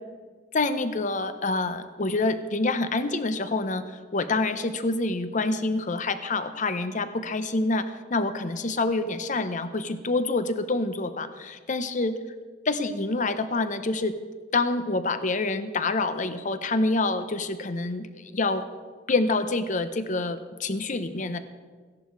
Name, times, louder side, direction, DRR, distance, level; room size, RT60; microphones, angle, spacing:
voice 1, 0.5-12.2 12.6-14.1 14.5-18.6 19.1-21.4, left 3 dB, 45° left, 11 dB, 0.8 m, -27 dB
15.5 x 11.0 x 4.7 m, 1.5 s
head